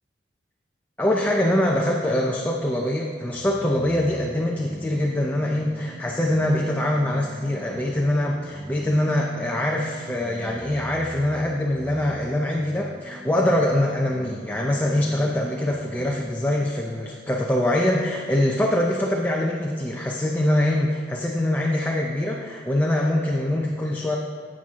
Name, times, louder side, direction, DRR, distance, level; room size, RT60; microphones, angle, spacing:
voice 1, 1.0-24.2, left 1 dB, 10° left, -1 dB, 0.6 m, -23 dB
sound 1, 3.3-16.3, right 1 dB, 80° right, 1.1 m, -42 dB
10.5 x 7.6 x 3.6 m, 2.1 s
head